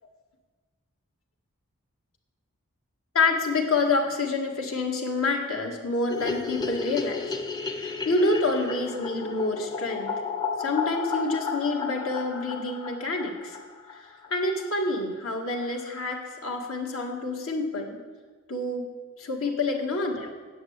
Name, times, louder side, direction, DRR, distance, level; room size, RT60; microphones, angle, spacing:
voice 1, 3.1-7.3 7.6-10.1 10.6-13.6 14.3-18.0 18.5-18.9 19.2-20.3, left 3 dB, 70° left, 1 dB, 1.8 m, -27 dB
sound 1, 6.1-14.3 14.6-14.7 14.9-15.0 15.3-15.4 15.6-16.2, left 5 dB, 20° left, 0.6 m, -33 dB
9.4 x 7.5 x 8.7 m, 1.4 s
head